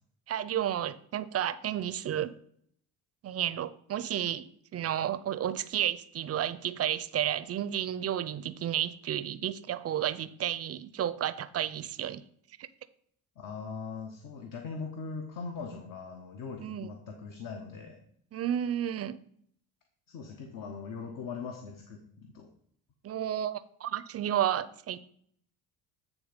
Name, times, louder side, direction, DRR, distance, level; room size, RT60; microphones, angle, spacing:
voice 1, 0.3-2.3 3.2-4.4 4.7-12.2 16.6-16.9 18.3-19.2 23.0-25.0, right 10 dB, 40° right, 0.5 m, -32 dB
voice 2, 13.4-18.0 20.1-22.5, left 5 dB, 55° left, 1.0 m, -40 dB
8.9 x 3.6 x 5.1 m
cardioid pair, 90°, 38 cm